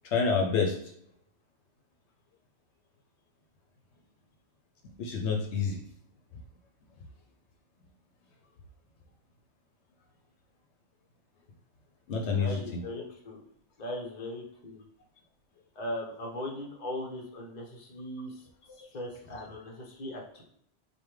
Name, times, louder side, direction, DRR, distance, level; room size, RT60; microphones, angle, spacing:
voice 1, 0.0-0.7 5.0-5.8 12.1-12.8 18.8-18.9, left 5 dB, 80° left, 2 dB, 0.9 m, -28 dB
voice 2, 12.4-13.4 13.8-14.8 15.7-18.4 18.7-20.4, left 1 dB, 40° left, -2 dB, 1.0 m, -39 dB
5.3 x 2.2 x 3.1 m, 0.72 s
omnidirectional pair, 1.2 m